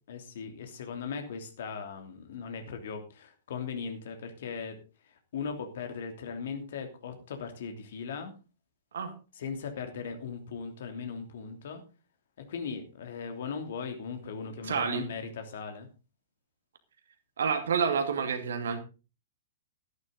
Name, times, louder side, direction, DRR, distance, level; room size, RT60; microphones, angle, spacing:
voice 1, 0.1-8.3 9.3-11.8 12.4-15.9, left 5 dB, 55° left, 6 dB, 3.0 m, -38 dB
voice 2, 14.6-15.0 17.4-18.8, right 6 dB, 60° right, 7 dB, 2.5 m, -29 dB
13.5 x 11.5 x 4.0 m, 0.32 s
figure-of-eight pair, 110°, 0 cm